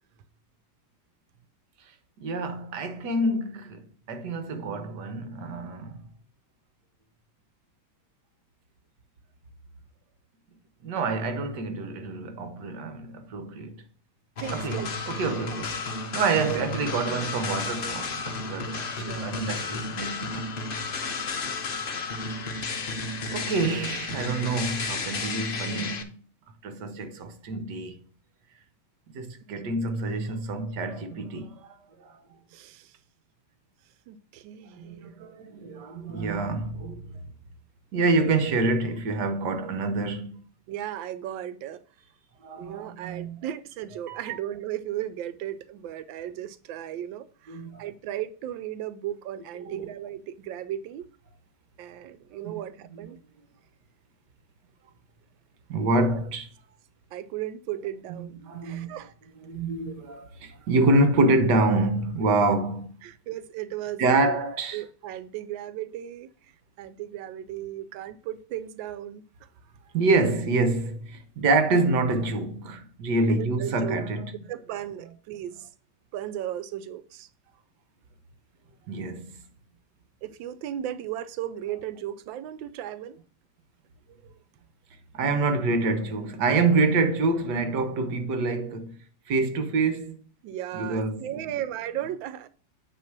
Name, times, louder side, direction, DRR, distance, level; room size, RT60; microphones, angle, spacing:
voice 1, 2.2-6.0 10.8-13.8 14.5-15.8 16.1-20.5 23.3-26.1 26.6-28.0 29.1-31.7 32.0-32.1 34.8-37.2 37.9-40.4 42.4-43.4 44.1-44.4 47.5-47.8 49.6-49.9 52.3-52.5 55.7-56.5 58.2-58.9 59.5-62.9 64.0-64.8 69.9-74.3 78.9-79.4 85.1-89.0 89.3-90.2 90.7-91.3, right 3 dB, 65° right, 1.5 m, -27 dB
sound 1, 14.4-26.0, left 3 dB, 55° left, 0.6 m, -32 dB
voice 2, 14.4-15.0 15.3-15.5 18.9-19.3 29.5-29.8 32.5-32.9 34.1-35.0 40.7-41.8 42.6-51.1 51.8-53.2 57.1-58.4 58.6-59.1 63.0-64.4 64.7-66.3 66.8-69.2 73.3-74.1 74.5-75.7 76.1-77.3 80.2-83.2 90.4-92.5, right 11 dB, 90° right, 1.3 m, -36 dB
9.1 x 3.2 x 5.9 m
omnidirectional pair, 2.0 m